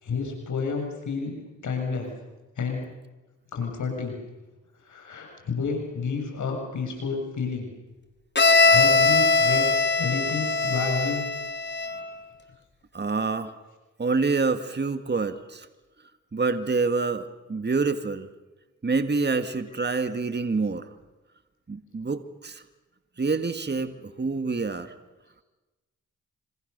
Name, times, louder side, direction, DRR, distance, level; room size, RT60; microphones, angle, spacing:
voice 1, 0.0-1.4 1.6-2.1 2.6-2.8 3.5-4.2 4.9-7.7 8.6-11.2, left 5 dB, 75° left, 2 dB, 6.8 m, -30 dB
Bowed string instrument, 8.4-12.1, left 3 dB, 35° left, 3.8 m, -21 dB
voice 2, 12.9-13.6 14.0-15.7 16.3-18.3 18.8-20.9 21.7-22.6 23.2-24.9, right 4 dB, 35° right, 10 dB, 1.9 m, -27 dB
26.5 x 26.5 x 6.8 m, 1.1 s
cardioid pair, 50°, 30 cm